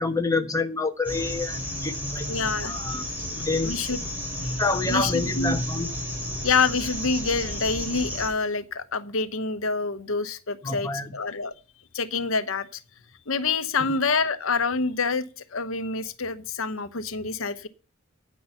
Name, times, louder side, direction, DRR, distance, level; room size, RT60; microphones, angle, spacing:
voice 1, 0.0-2.3 2.7-3.7 4.6-5.9 10.6-11.1 13.8-13.9, left 3 dB, 15° left, 5 dB, 1.2 m, -28 dB
sound 1, 1.0-8.3, equal, 10° right, 4.7 m, -32 dB
voice 2, 2.3-2.7 3.6-4.0 4.9-5.6 6.4-11.5 11.9-12.8 13.3-15.2 15.5-17.7, left 4 dB, 70° left, 11 dB, 1.0 m, -27 dB
10.0 x 9.2 x 5.7 m, 0.34 s
head